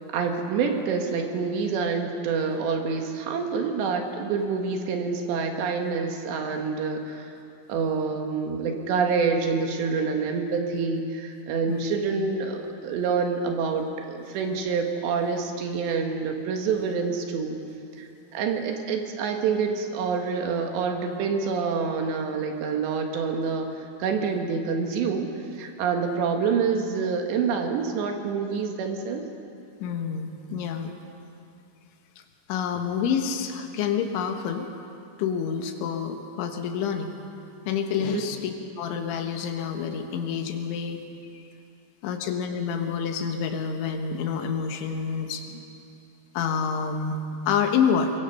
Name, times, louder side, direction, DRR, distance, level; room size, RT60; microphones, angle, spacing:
voice 1, 0.1-7.3 7.7-17.6 18.0-29.2 38.1-38.2, right 5 dB, 70° right, 3 dB, 3.5 m, -27 dB
voice 2, 29.8-30.9 32.5-34.7 35.2-37.1 37.7-38.5 38.8-41.0 41.3-41.4 42.0-45.6 46.4-48.1, left 7 dB, 80° left, 5 dB, 3.6 m, -28 dB
23.5 x 22.5 x 5.7 m, 2.7 s
omnidirectional pair, 5.5 m